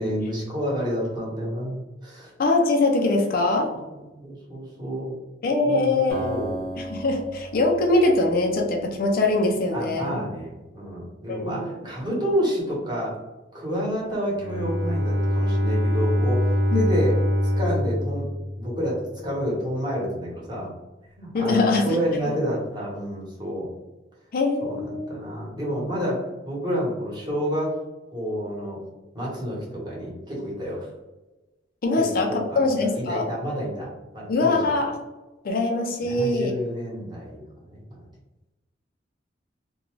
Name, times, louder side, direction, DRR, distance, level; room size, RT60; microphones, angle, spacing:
voice 1, 0.0-2.3 3.9-5.2 5.6-6.5 9.7-13.2 13.5-17.2 17.6-18.3 18.6-20.7 21.2-23.7 24.6-27.7 28.1-28.8 29.1-30.9 32.0-34.6 36.0-37.4 37.7-38.0, equal, 25° right, -5 dB, 1.1 m, -29 dB
voice 2, 2.4-3.7 5.4-6.4 6.8-10.2 11.3-11.7 16.7-16.8 21.3-22.0 24.3-25.1 31.8-33.3 34.3-34.9 35.4-36.5, left 2 dB, 55° left, 2 dB, 0.4 m, -22 dB
Acoustic guitar, 6.1-9.3, right 2 dB, 50° right, 1.0 m, -36 dB
Bowed string instrument, 14.3-19.1, equal, 85° right, 1.2 m, -24 dB
2.5 x 2.2 x 3.0 m, 1.1 s
head